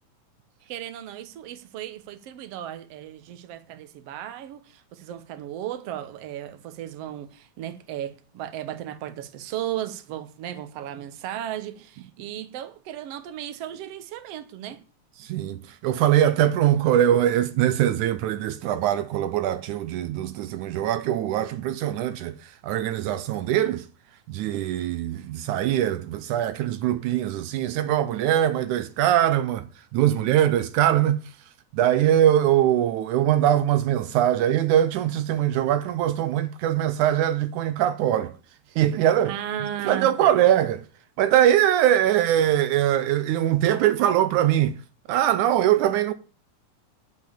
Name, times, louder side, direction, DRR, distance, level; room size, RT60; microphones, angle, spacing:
voice 1, 0.7-14.8 39.3-40.4, right 11 dB, 60° right, 2.0 m, -35 dB
voice 2, 15.2-23.9 24.3-29.7 29.9-31.2 31.7-38.3 38.8-39.3 39.9-40.9 41.2-44.8 45.1-46.1, right 11 dB, 80° right, 2.2 m, -22 dB
11.0 x 5.3 x 8.5 m
omnidirectional pair, 3.5 m